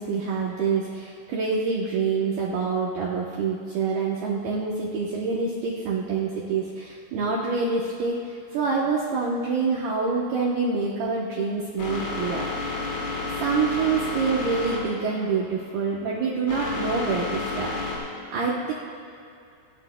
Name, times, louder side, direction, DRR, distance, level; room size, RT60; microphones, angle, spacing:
voice 1, 0.0-8.2 8.5-12.8 13.4-17.8 18.3-18.7, right 4 dB, 75° right, -4 dB, 2.3 m, -26 dB
sound 1, 11.8-18.0, left 3 dB, 60° left, 3.8 m, -31 dB
28.5 x 9.9 x 2.2 m, 2.6 s
omnidirectional pair, 5.7 m